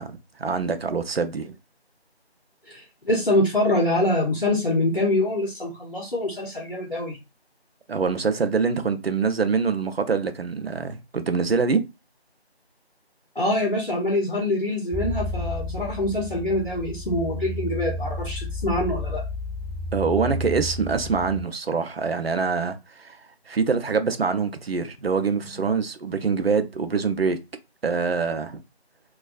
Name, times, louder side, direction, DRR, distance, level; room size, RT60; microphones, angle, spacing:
voice 1, 0.0-1.6 7.9-11.8 19.9-23.2 23.5-27.4 27.8-28.6, right 5 dB, 65° right, 0.5 m, -25 dB
voice 2, 2.7-7.2 13.4-19.2, left 1 dB, 55° left, 0.7 m, -25 dB
sound 1, 14.9-21.5, left 2 dB, ahead, 0.3 m, -32 dB
2.4 x 2.2 x 2.4 m
figure-of-eight pair, 175°, 32 cm